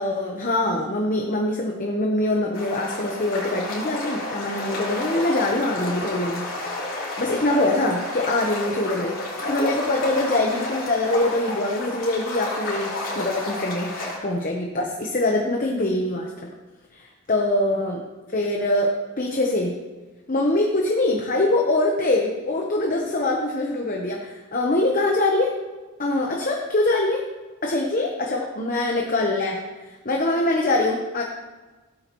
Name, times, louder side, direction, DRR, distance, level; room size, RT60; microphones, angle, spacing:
voice 1, 0.0-6.8 7.2-9.2 9.5-13.9 14.2-16.3 16.9-18.0 18.3-19.7 20.3-25.5 26.0-27.2 27.6-29.6 30.0-31.2, left 2 dB, 40° left, 0 dB, 1.0 m, -23 dB
sound 1, 2.5-14.2, left 2 dB, 65° left, 3.7 m, -31 dB
16.5 x 8.7 x 3.1 m, 1.2 s
head